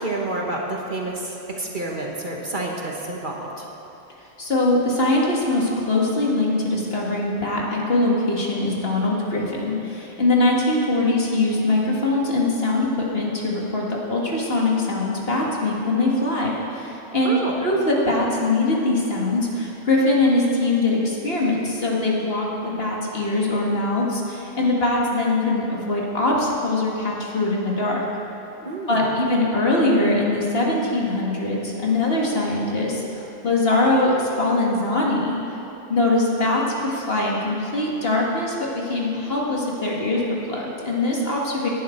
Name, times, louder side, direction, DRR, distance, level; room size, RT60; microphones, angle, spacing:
voice 1, 0.0-3.6 17.2-17.5 28.6-29.1, right 2 dB, 40° right, -1 dB, 1.5 m, -29 dB
voice 2, 4.4-17.3 17.6-28.0 28.9-35.4 35.9-41.7, left 2 dB, 50° left, -3 dB, 2.1 m, -22 dB
17.5 x 11.0 x 4.5 m, 2.9 s
omnidirectional pair, 1.3 m